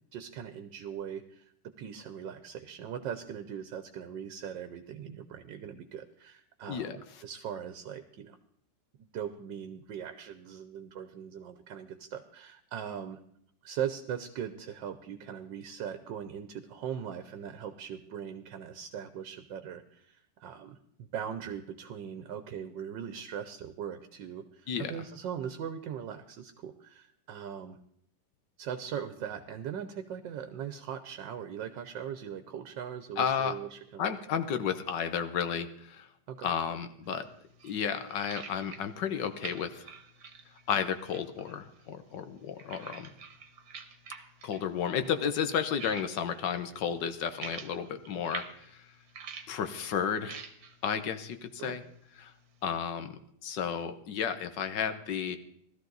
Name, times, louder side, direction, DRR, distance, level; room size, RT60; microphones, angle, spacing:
voice 1, 0.0-1.5 1.8-8.4 9.1-13.2 13.6-27.8 28.6-34.0 36.3-36.5 51.6-51.8, right 8 dB, 75° right, 9 dB, 1.5 m, -40 dB
voice 2, 33.2-33.5 34.0-36.1 36.4-37.2 37.6-39.9 40.7-43.1 44.4-48.9 49.5-50.4 50.8-51.8 52.2-52.3 52.6-55.4, left 7 dB, 75° left, 9 dB, 1.6 m, -32 dB
sound 1, 37.0-52.8, right 5 dB, 55° right, 1.5 m, -49 dB
16.5 x 13.0 x 3.9 m, 0.70 s
omnidirectional pair, 2.0 m